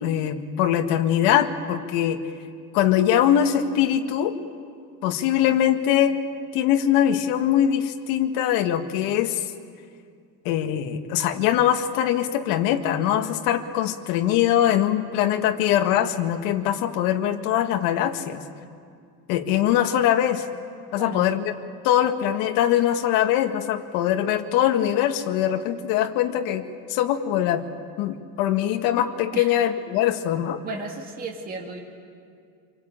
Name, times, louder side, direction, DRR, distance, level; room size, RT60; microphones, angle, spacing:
voice 1, 0.0-2.2 2.7-4.3 5.0-6.2 6.5-9.4 10.4-18.4 19.3-20.4 20.9-21.5 21.8-26.6 26.9-27.6 28.0-30.6, left 11 dB, 70° left, 6 dB, 1.8 m, -22 dB
voice 2, 30.6-31.8, right 3 dB, 25° right, 1 dB, 2.3 m, -34 dB
27.0 x 23.5 x 8.8 m, 2.3 s
cardioid pair, 175°, 35 cm